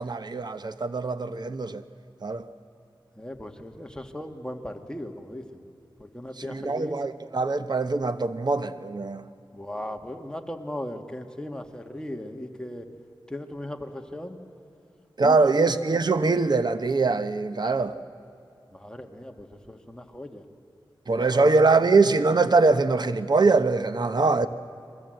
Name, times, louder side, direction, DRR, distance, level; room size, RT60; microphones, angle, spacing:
voice 1, 0.0-1.8 2.2-2.5 6.5-9.3 15.2-18.0 21.1-24.5, right 3 dB, 55° right, 1.0 m, -22 dB
voice 2, 3.2-5.6 6.0-7.0 9.5-12.9 13.3-14.4 15.2-15.4 17.6-17.7 18.7-20.4 21.1-21.5, left 1 dB, 10° left, 2.0 m, -37 dB
30.0 x 22.0 x 7.9 m
wide cardioid pair, 60°, 9 cm